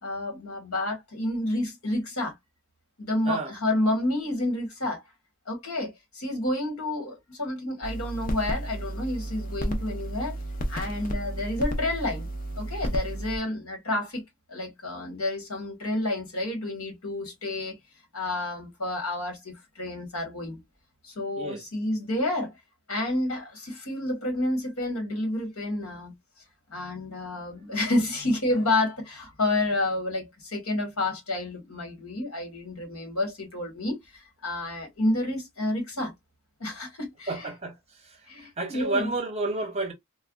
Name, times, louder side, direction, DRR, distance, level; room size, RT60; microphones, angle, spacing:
voice 1, 0.0-2.3 3.0-5.0 5.5-10.3 10.7-12.3 12.5-14.2 14.5-17.7 18.1-20.6 21.0-22.5 22.9-26.1 26.7-36.1 36.6-37.5 38.3-39.1, left 1 dB, 75° left, 1.5 m, -29 dB
sound 1, 7.8-13.4, right 1 dB, 40° left, 0.5 m, -32 dB
voice 2, 37.3-37.8 38.0-39.9, right 3 dB, 30° right, 0.6 m, -31 dB
3.3 x 2.2 x 2.2 m
head